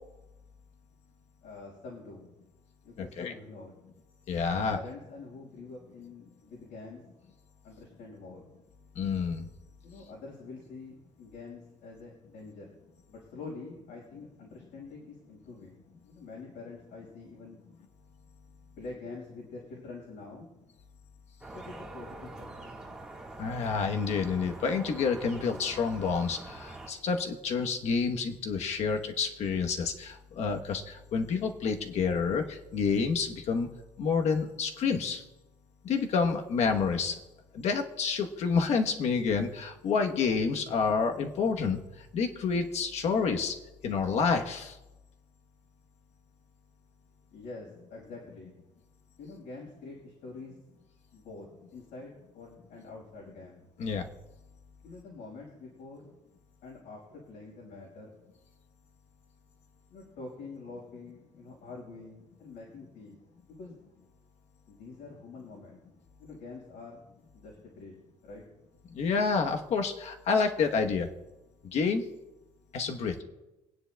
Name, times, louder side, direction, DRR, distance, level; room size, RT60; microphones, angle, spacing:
voice 1, 1.4-2.3 2.8-3.7 4.5-7.0 7.6-8.4 9.8-12.7 13.1-15.8 16.0-17.6 18.8-20.5 21.5-22.9 47.3-48.5 49.2-50.6 51.1-51.5 51.7-53.6 54.8-56.1 56.6-58.2 59.9-63.1 63.4-63.8 64.7-65.8 66.2-67.0 67.3-68.0 68.2-68.4, left 3 dB, 90° left, -4 dB, 5.1 m, -46 dB
voice 2, 3.0-3.3 4.3-4.8 8.9-9.4 23.4-33.7 34.0-35.2 35.8-37.2 37.5-41.8 42.1-43.5 43.8-44.8 53.8-54.0 68.9-71.1 71.6-72.0 72.7-73.2, left 5 dB, 55° left, 5 dB, 1.0 m, -29 dB
sound 1, 21.4-26.9, right 2 dB, 5° right, 1.6 m, -45 dB
25.5 x 9.6 x 2.3 m, 1.0 s
cardioid pair, 170°, 13 cm